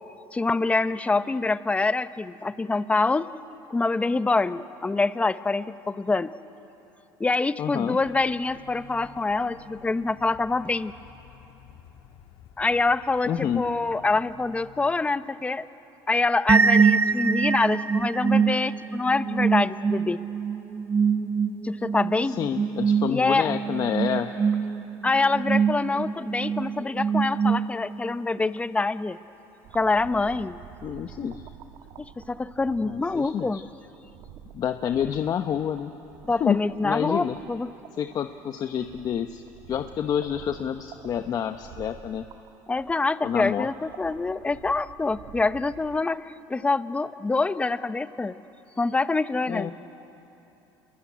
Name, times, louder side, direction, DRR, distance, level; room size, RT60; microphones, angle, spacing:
voice 1, 0.3-3.2 3.7-6.3 7.2-10.9 12.6-15.6 16.1-20.2 21.6-22.4 23.1-23.5 25.0-29.2 29.7-30.6 31.2-31.3 32.3-33.6 36.2-37.7 42.7-48.4 48.8-49.7, left 3 dB, 15° left, 14 dB, 0.7 m, -25 dB
voice 2, 7.6-8.0 13.3-13.6 22.2-24.3 30.8-31.4 32.8-33.6 34.5-35.9 36.4-37.4 38.0-39.4 39.7-42.3 43.2-43.7 49.5-49.7, left 9 dB, 45° left, 7 dB, 0.9 m, -28 dB
sound 1, 8.0-14.9, left 8 dB, 65° left, 2.0 m, -51 dB
sound 2, 16.5-28.1, right 6 dB, 25° right, 0.6 m, -24 dB
sound 3, 29.6-46.0, right 10 dB, 65° right, 1.2 m, -49 dB
26.0 x 21.5 x 9.8 m, 3.0 s
supercardioid pair, 105°, 9 cm